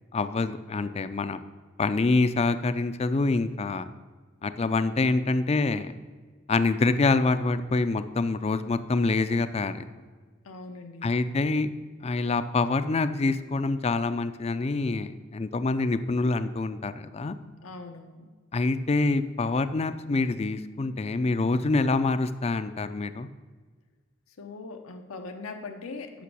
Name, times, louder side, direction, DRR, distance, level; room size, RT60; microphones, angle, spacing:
voice 1, 0.1-1.4 1.8-3.9 4.4-5.9 6.5-9.9 11.0-11.7 12.0-17.4 18.5-23.3, left 3 dB, 30° left, 12 dB, 0.4 m, -26 dB
voice 2, 10.4-11.1 17.6-18.3 24.4-26.2, left 3 dB, 90° left, 4 dB, 0.8 m, -40 dB
8.3 x 6.1 x 6.2 m, 1.5 s
head